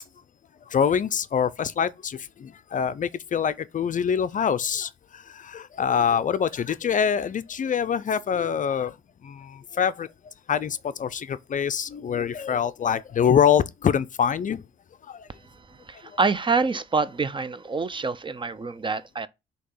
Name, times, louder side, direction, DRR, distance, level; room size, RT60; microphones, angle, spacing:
voice 1, 0.7-9.0 9.2-10.1 10.5-14.6 15.1-15.3 16.0-16.2, left 8 dB, 40° left, 0.4 m, -25 dB
voice 2, 15.9-19.3, right 4 dB, 25° right, 0.5 m, -26 dB
6.5 x 2.9 x 5.5 m
cardioid pair, 90°, 20 cm